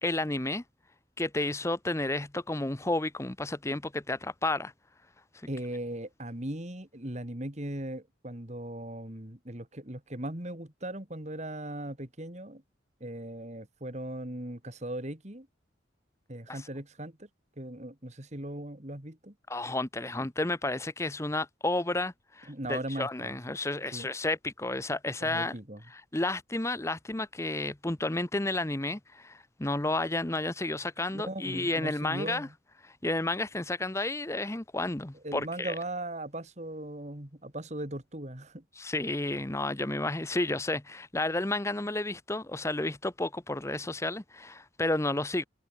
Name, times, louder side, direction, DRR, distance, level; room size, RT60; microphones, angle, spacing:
voice 1, 0.0-0.6 1.2-4.7 16.5-16.7 19.5-25.5 25.9-32.5 32.8-35.7 38.7-45.4, left 2 dB, 15° left, 0.7 m, -31 dB
voice 2, 5.5-12.6 13.0-15.5 16.3-17.3 17.6-19.3 22.5-23.4 23.9-24.1 25.2-25.8 31.1-32.5 35.2-38.6, right 1 dB, 35° right, 2.4 m, -38 dB
head